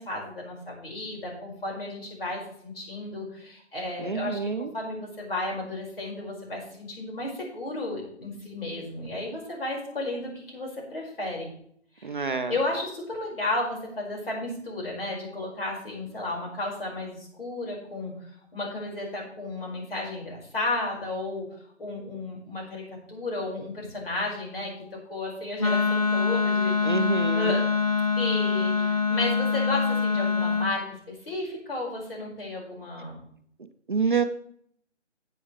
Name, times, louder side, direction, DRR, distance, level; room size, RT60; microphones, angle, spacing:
voice 1, 0.0-11.5 12.0-18.1 18.5-21.5 21.8-24.7 25.1-27.6 28.2-33.2, left 2 dB, 50° left, -2 dB, 5.5 m, -33 dB
voice 2, 4.0-4.7 12.0-12.5 26.8-27.6 33.9-34.2, right 5 dB, 45° right, 8 dB, 0.6 m, -27 dB
Wind instrument woodwind instrument, 25.6-30.7, left 5 dB, 35° left, 0.5 m, -24 dB
14.0 x 8.7 x 3.3 m, 0.65 s
figure-of-eight pair, 160°, 36 cm